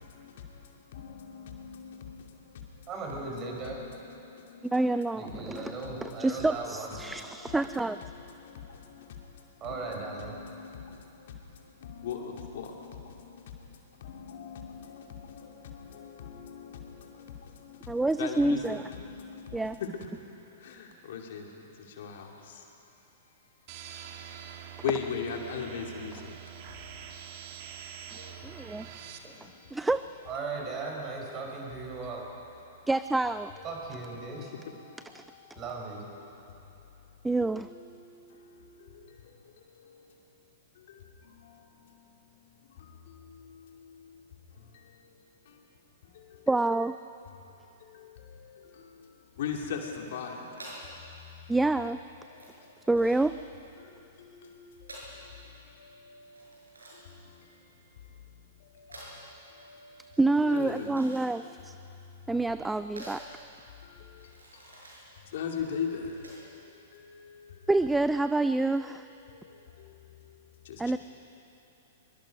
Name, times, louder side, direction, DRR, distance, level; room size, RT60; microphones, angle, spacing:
voice 1, 0.0-2.9 3.2-4.7 5.3-6.3 7.0-20.1 20.6-22.7 24.8-26.3 28.1-29.7 34.3-35.6 37.4-39.4 39.7-40.1 40.8-44.2 44.5-45.0 45.5-45.6 46.0-46.5 47.8-50.5 52.3-52.9 53.8-57.7 58.6-61.1 61.9-62.2 63.8-67.5 68.4-68.5 68.9-71.0, left 6 dB, 55° left, 2 dB, 2.6 m, -42 dB
voice 2, 2.9-3.8 5.1-7.0 9.6-10.4 29.2-29.3 30.3-32.2 33.6-34.5 35.5-36.1, right 4 dB, 30° right, 0 dB, 5.5 m, -37 dB
voice 3, 4.6-5.8 6.0-8.0 17.9-18.8 19.5-19.8 28.4-28.9 29.7-30.0 32.9-33.5 35.1-35.2 37.2-37.7 46.5-46.9 51.5-52.0 52.9-53.4 60.2-61.7 62.3-63.2 67.7-69.0 70.8-71.0, right 2 dB, 5° right, 12 dB, 0.4 m, -27 dB
sound 1, 23.7-29.2, right 8 dB, 45° right, 2.0 m, -45 dB
sound 2, 50.6-66.6, right 1 dB, 80° right, 7.0 m, -51 dB
23.5 x 23.0 x 5.4 m, 2.8 s
figure-of-eight pair, 105°, 0 cm